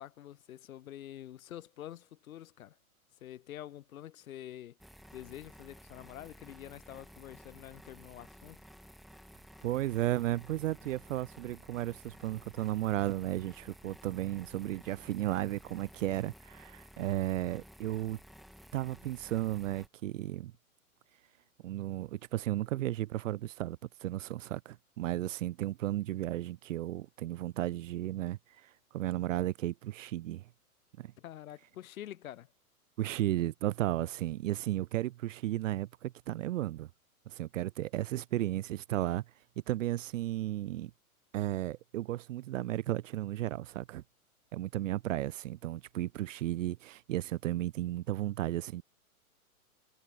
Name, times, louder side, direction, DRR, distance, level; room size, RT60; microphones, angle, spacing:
voice 1, 0.0-2.8 3.2-4.8 5.1-8.7 31.2-32.5, left 12 dB, 65° left, 1.3 m, -47 dB
sound 1, 4.8-19.9, equal, ahead, 0.4 m, -54 dB
voice 2, 9.6-18.2 18.7-20.5 21.6-30.4 31.0-31.1 33.0-36.9 37.3-39.2 39.7-40.9 41.3-44.0 44.5-48.8, right 14 dB, 60° right, 0.7 m, -34 dB
hypercardioid pair, 130°, 44 cm